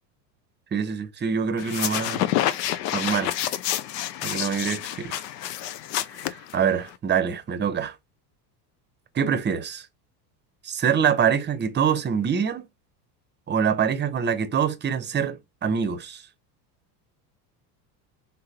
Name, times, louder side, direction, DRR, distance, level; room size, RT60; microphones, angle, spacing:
voice 1, 0.7-2.2 2.9-3.3 4.2-5.2 6.5-8.0 9.1-9.9 10.6-12.6 13.5-16.2, right 7 dB, 25° right, 0.7 m, -25 dB
sound 1, 1.6-6.9, left 12 dB, 90° left, 0.6 m, -28 dB
4.0 x 3.7 x 2.8 m
supercardioid pair, 95°, 47 cm